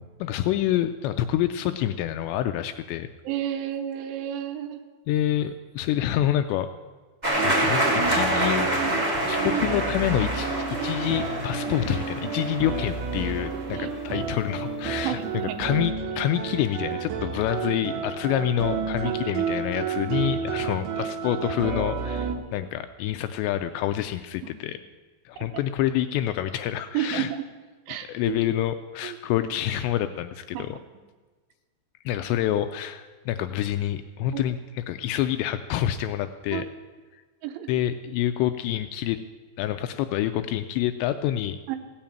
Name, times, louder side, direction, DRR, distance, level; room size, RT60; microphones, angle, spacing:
voice 1, 0.0-3.1 5.1-6.7 7.4-8.7 9.3-15.2 15.6-24.8 25.3-27.3 27.9-30.8 32.1-36.6 37.7-39.2 39.6-41.6, left 12 dB, 85° left, 9 dB, 2.5 m, -27 dB
voice 2, 3.2-4.8 13.2-13.3 13.7-13.9 15.0-15.6 19.0-19.4 22.3-22.7 24.4-24.5 26.9-27.4 27.9-28.4 29.0-29.2 30.5-30.7 34.3-34.4 36.5-36.6 37.4-37.7 41.7-41.8, right 11 dB, 85° right, 7 dB, 3.3 m, -31 dB
sound 1, 7.2-13.9, right 1 dB, 20° right, 1.1 m, -27 dB
sound 2, 7.4-22.3, right 6 dB, 70° right, 3.0 m, -31 dB
16.0 x 7.1 x 8.8 m, 1.4 s
omnidirectional pair, 5.4 m